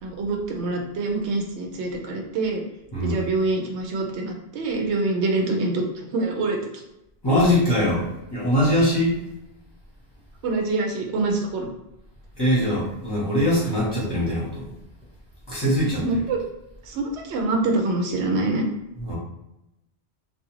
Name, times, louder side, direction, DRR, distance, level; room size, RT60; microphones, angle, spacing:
voice 1, 0.0-2.6 3.0-6.6 10.4-11.7 16.0-16.4 16.8-18.6, right 2 dB, 85° right, 2 dB, 0.9 m, -25 dB
voice 2, 7.2-9.2 12.4-14.7 15.5-16.2 19.0-19.1, equal, 25° left, -8 dB, 1.0 m, -22 dB
2.4 x 2.3 x 3.0 m, 0.89 s
omnidirectional pair, 1.1 m